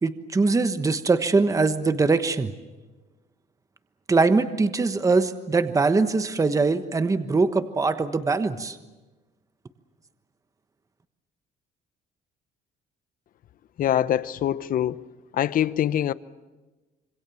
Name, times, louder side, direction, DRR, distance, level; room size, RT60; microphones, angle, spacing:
voice 1, 0.0-2.5 4.1-8.8, right 3 dB, 20° right, 1.2 m, -22 dB
voice 2, 13.8-15.0 15.3-16.1, left 11 dB, 55° left, 0.9 m, -24 dB
26.0 x 26.0 x 7.1 m
cardioid pair, 110°, 17 cm